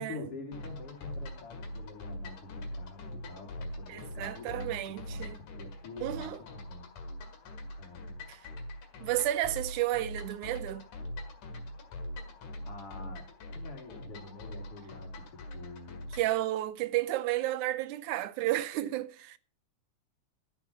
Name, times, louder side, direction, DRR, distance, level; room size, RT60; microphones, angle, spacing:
voice 1, 0.0-6.9 7.8-8.1 12.7-16.1, left 4 dB, 50° left, 3.6 m, -47 dB
sound 1, 0.5-16.4, left 1 dB, 90° left, 3.5 m, -43 dB
voice 2, 3.9-5.4 6.0-6.4 8.3-8.4 9.0-10.8 16.1-19.4, right 15 dB, 80° right, 2.1 m, -32 dB
12.5 x 8.4 x 5.5 m
omnidirectional pair, 3.5 m